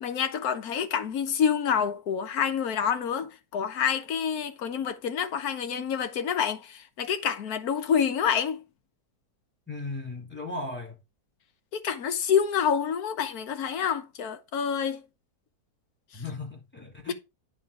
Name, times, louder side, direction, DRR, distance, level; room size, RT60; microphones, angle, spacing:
voice 1, 0.0-8.6 11.8-15.0 16.1-16.2 17.1-17.2, left 7 dB, 60° left, 1.4 m, -27 dB
voice 2, 9.7-10.9 16.1-17.1, left 2 dB, 5° left, 2.6 m, -36 dB
9.7 x 4.3 x 4.8 m
omnidirectional pair, 1.9 m